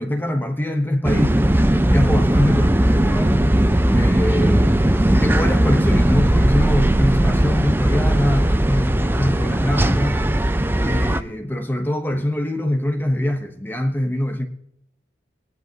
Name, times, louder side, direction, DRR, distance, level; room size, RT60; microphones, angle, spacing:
voice 1, 0.0-3.5 3.9-10.2 10.8-14.5, left 1 dB, 10° left, 1.0 m, -24 dB
sound 1, 1.0-11.2, right 1 dB, 10° right, 0.5 m, -18 dB
22.5 x 10.5 x 2.9 m
head